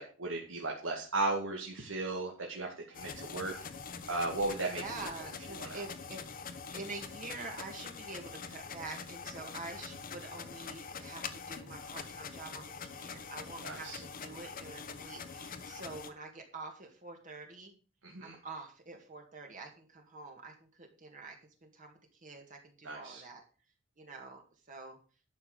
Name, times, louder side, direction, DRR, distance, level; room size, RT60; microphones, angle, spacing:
voice 1, 0.0-2.7 2.9-3.5 4.1-4.8 5.6-5.8 13.6-14.0 18.0-18.4 22.8-23.2, right 2 dB, 80° right, -1 dB, 2.2 m, -35 dB
sound 1, 2.9-16.1, left 5 dB, 45° left, 1.1 m, -44 dB
voice 2, 4.7-6.2 6.7-17.7 18.2-21.4 21.6-23.4 24.0-24.4 24.7-25.0, right 3 dB, 40° right, 2 dB, 2.1 m, -46 dB
11.5 x 5.9 x 6.7 m, 0.36 s
head